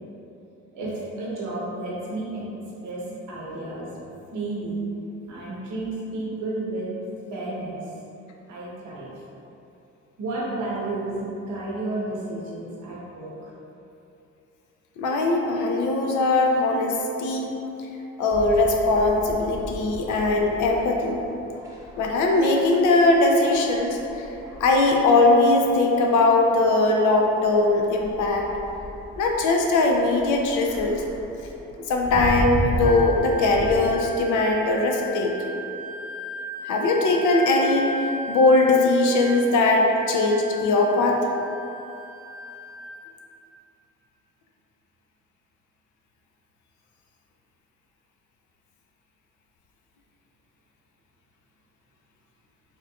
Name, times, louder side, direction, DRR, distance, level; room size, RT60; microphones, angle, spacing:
voice 1, 0.7-2.4 2.8-3.9 4.3-4.8 5.3-6.9 7.3-7.8 8.5-9.1 10.2-13.5, right 2 dB, 80° right, -5 dB, 1.0 m, -32 dB
voice 2, 15.0-17.5 18.2-21.2 22.0-24.0 24.6-28.5 29.2-31.0 31.9-35.5 36.6-37.9 38.3-41.2, left 2 dB, 75° left, 1 dB, 0.6 m, -20 dB
sound 1, 18.3-33.8, equal, 10° right, 0.8 m, -35 dB
Wind instrument woodwind instrument, 32.8-43.2, left 1 dB, 20° left, 0.4 m, -37 dB
4.6 x 2.9 x 2.3 m, 2.9 s
cardioid pair, 90°, 30 cm